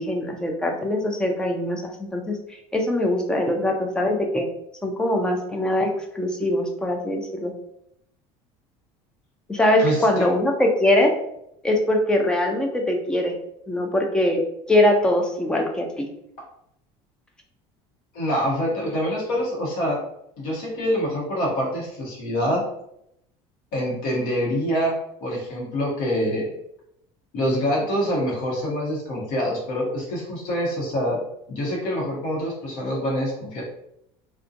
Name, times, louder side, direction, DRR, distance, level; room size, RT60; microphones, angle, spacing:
voice 1, 0.0-2.4 2.7-4.5 4.8-5.9 6.1-7.5 9.5-11.1 11.6-13.3 13.7-14.4 14.7-16.1, left 1 dB, 5° left, 2 dB, 0.3 m, -22 dB
voice 2, 9.8-10.3 18.1-20.0 20.4-22.6 23.7-25.0 25.2-26.5 27.3-31.2 31.5-33.6, equal, 70° left, -3 dB, 0.9 m, -25 dB
2.6 x 2.1 x 2.4 m, 0.75 s
cardioid pair, 160°, 13 cm